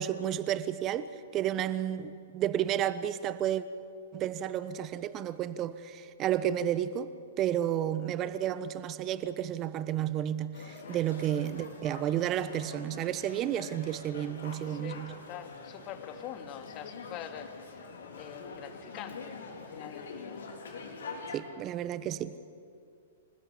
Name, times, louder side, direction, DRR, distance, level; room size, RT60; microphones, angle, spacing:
voice 1, 0.0-3.6 4.1-15.1 21.3-22.4, right 11 dB, 30° right, 1.0 m, -32 dB
sound 1, 10.5-21.4, left 4 dB, 70° left, 4.1 m, -45 dB
voice 2, 14.7-17.5 18.1-20.4, left 10 dB, 35° left, 2.5 m, -44 dB
26.5 x 20.0 x 8.5 m
figure-of-eight pair, 110°, 0 cm